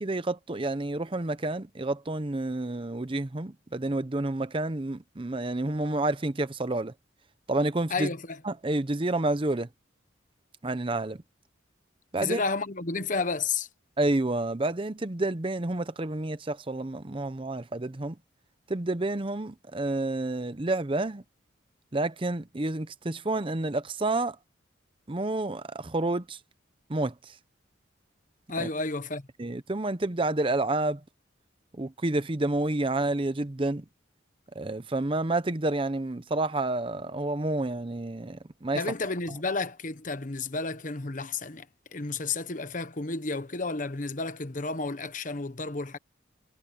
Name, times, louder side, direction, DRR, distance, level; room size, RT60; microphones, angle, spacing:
voice 1, 0.0-6.9 7.5-8.1 8.4-9.7 10.6-11.2 12.1-12.4 14.0-18.2 18.7-21.2 21.9-24.4 25.1-26.4 26.9-27.3 28.6-28.7 29.4-31.0 31.8-33.8 34.5-38.8, right 2 dB, 30° right, 0.7 m, -29 dB
voice 2, 7.9-8.4 12.2-13.7 28.5-29.3 38.7-41.7 41.9-46.0, left 3 dB, 45° left, 1.1 m, -31 dB
head